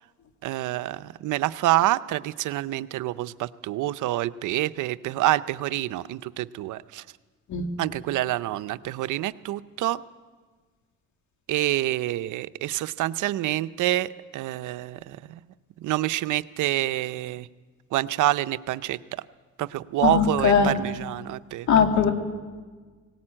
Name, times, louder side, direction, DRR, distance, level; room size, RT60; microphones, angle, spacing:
voice 1, 0.4-7.0 7.8-10.0 11.5-15.4 15.8-17.5 17.9-19.2 19.6-21.7, right 15 dB, 80° right, 15 dB, 0.6 m, -27 dB
voice 2, 20.0-20.7 21.7-22.1, left 6 dB, 70° left, 4 dB, 2.5 m, -20 dB
19.0 x 18.0 x 8.8 m, 1.4 s
cardioid pair, 90°, 30 cm